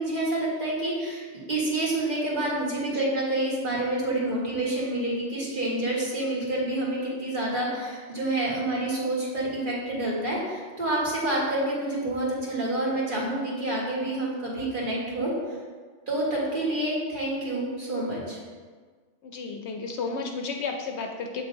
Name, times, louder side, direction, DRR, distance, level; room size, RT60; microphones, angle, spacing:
voice 1, 0.0-15.3 16.1-18.4, right 1 dB, 45° right, -6 dB, 1.7 m, -28 dB
voice 2, 19.2-21.4, left 4 dB, 70° left, 3 dB, 0.8 m, -33 dB
7.3 x 6.2 x 2.7 m, 1.5 s
omnidirectional pair, 1.3 m